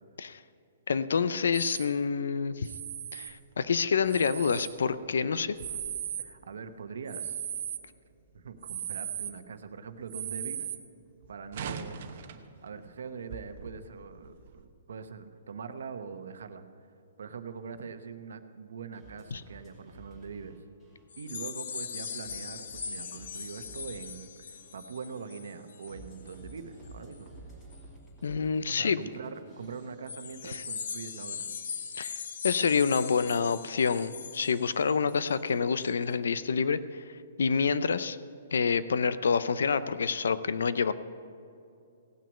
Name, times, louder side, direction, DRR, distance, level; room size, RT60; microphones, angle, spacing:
voice 1, 0.9-2.7 3.1-5.5 19.3-19.4 28.2-29.0 30.4-30.6 32.0-37.0 37.4-38.2 38.5-40.9, left 5 dB, 85° left, 14 dB, 0.5 m, -27 dB
sound 1, 1.5-1.9 2.6-3.3 4.0-4.8 5.4-6.3 7.1-7.8 8.6-9.3 10.1-10.8 11.2-12.4 13.0-13.1 13.3-13.7 14.2-14.6, right 10 dB, 40° right, 0.9 m, -37 dB
voice 2, 6.2-7.4 8.3-10.7 11.3-12.0 12.6-16.6 17.2-20.6 21.2-27.3 28.7-31.5, right 5 dB, 75° right, 9 dB, 1.0 m, -42 dB
sound 2, 18.9-30.9, right 1 dB, 15° left, 2.6 m, -53 dB
sound 3, 21.1-26.5 26.8-27.1 27.7-27.8 30.1-35.4 35.8-35.9, left 6 dB, 60° left, 0.8 m, -40 dB
17.5 x 6.2 x 8.3 m, 2.6 s
hypercardioid pair, 170°, 0 cm